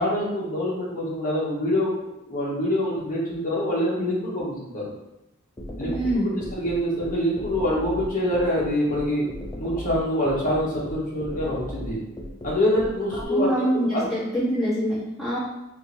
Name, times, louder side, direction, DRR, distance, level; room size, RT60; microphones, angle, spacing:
voice 1, 0.0-1.9 2.3-4.8 5.8-6.3 6.6-9.2 9.6-12.0 12.4-14.1, left 1 dB, 40° left, -5 dB, 1.0 m, -25 dB
sound 1, 5.6-13.2, equal, 15° left, 0.4 m, -35 dB
voice 2, 5.8-6.2 13.3-15.4, equal, ahead, -12 dB, 1.4 m, -25 dB
3.6 x 2.6 x 2.9 m, 0.91 s
head